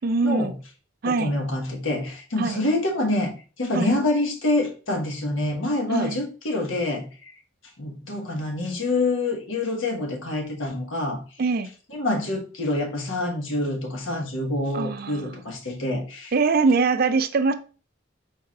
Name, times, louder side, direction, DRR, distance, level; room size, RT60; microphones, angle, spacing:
voice 1, 0.0-0.5 1.0-1.4 2.4-2.6 3.7-3.9 5.9-6.2 11.4-11.7 14.7-15.4 16.3-17.5, right 4 dB, 50° right, 10 dB, 0.4 m, -23 dB
voice 2, 1.0-7.3 7.8-11.2 11.9-16.3, left 2 dB, 75° left, 1 dB, 1.3 m, -26 dB
4.7 x 4.4 x 2.4 m, 0.36 s
head